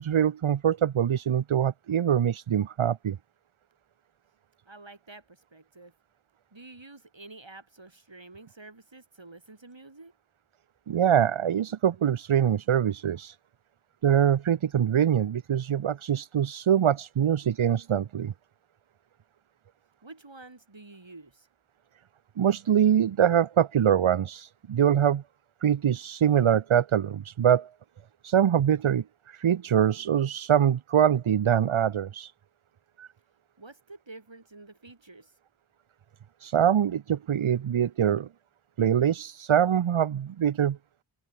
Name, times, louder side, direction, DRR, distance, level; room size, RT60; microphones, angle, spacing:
voice 1, 0.0-3.2 10.9-13.4 14.0-18.3 22.4-25.2 25.6-27.7 28.2-32.3 33.0-33.1 36.4-38.3 38.8-40.8, right 9 dB, 85° right, 0.6 m, -24 dB
voice 2, 4.7-5.9 6.5-10.1 20.0-21.5 33.6-35.3, right 2 dB, 65° right, 6.5 m, -49 dB
wide cardioid pair, 45°, 48 cm